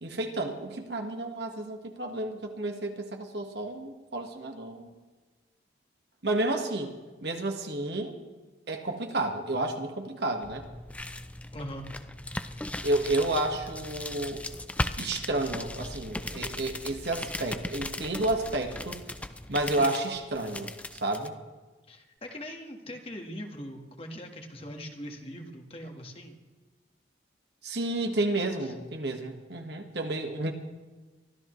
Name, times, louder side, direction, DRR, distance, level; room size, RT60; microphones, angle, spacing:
voice 1, 0.0-4.9 6.2-8.2 8.7-10.6 12.8-14.4 15.0-19.0 19.5-21.3 27.6-30.5, right 2 dB, 60° right, 4 dB, 1.6 m, -31 dB
sound 1, 10.4-21.3, left 1 dB, 5° left, 0.4 m, -37 dB
voice 2, 11.5-11.9 21.9-26.4 28.6-28.7, equal, 30° left, 3 dB, 1.6 m, -41 dB
24.0 x 13.5 x 3.2 m, 1.3 s
head